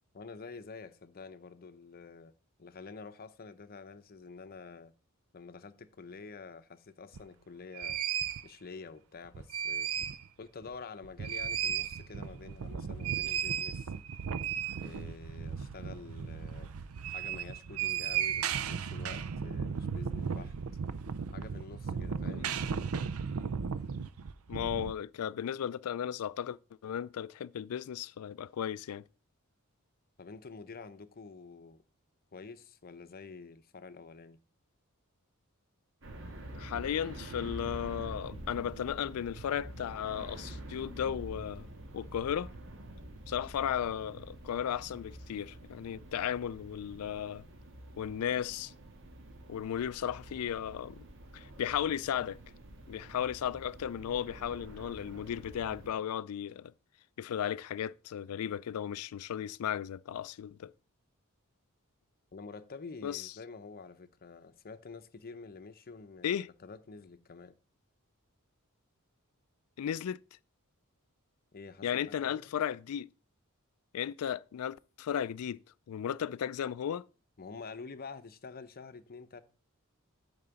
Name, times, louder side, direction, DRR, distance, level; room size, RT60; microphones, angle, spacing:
voice 1, 0.1-2.3 2.6-4.9 5.3-8.1 8.4-9.9 10.4-13.9 14.7-16.7 17.1-20.5 21.3-22.5 30.2-31.8 32.3-34.4 62.3-67.6 71.5-72.5 77.4-79.4, left 4 dB, 45° left, 0.7 m, -48 dB
sound 1, 7.1-7.2 7.7-8.4 9.2-10.3 10.6-10.7 11.0-24.9, right 7 dB, 80° right, 0.5 m, -35 dB
voice 2, 24.5-26.6 26.8-29.0 36.5-41.7 41.9-42.5 43.3-47.4 48.0-48.7 49.5-51.0 51.3-52.4 52.9-56.7 57.2-60.7 63.0-63.3 66.2-66.5 69.8-70.2 71.8-73.1 73.9-75.6 75.9-77.1, left 9 dB, 85° left, 0.4 m, -35 dB
sound 2, 36.0-55.9, right 1 dB, 60° right, 1.5 m, -47 dB
8.8 x 3.8 x 6.9 m
head